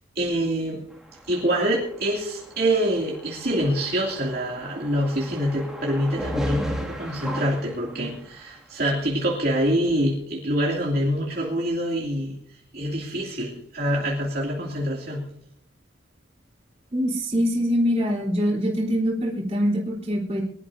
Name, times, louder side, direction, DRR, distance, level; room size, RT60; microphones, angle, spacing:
voice 1, 0.1-0.8 1.3-15.3, equal, 50° right, -3 dB, 2.9 m, -25 dB
sound 1, 0.9-8.5, equal, 5° right, 2.3 m, -36 dB
voice 2, 16.9-20.4, equal, 35° right, -2 dB, 3.9 m, -24 dB
24.5 x 12.5 x 2.8 m, 0.67 s
head